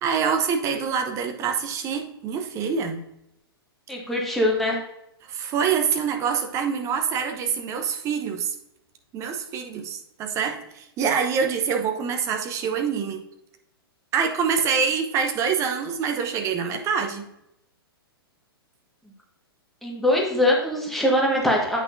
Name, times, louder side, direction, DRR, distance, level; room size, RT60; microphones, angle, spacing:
voice 1, 0.0-3.0 5.3-8.5 9.1-13.2 14.1-17.3, right 6 dB, 25° right, 5 dB, 0.9 m, -25 dB
voice 2, 3.9-4.8 19.8-21.8, left 1 dB, ahead, -2 dB, 1.5 m, -22 dB
8.4 x 5.9 x 2.6 m, 0.81 s
figure-of-eight pair, 110°, 13 cm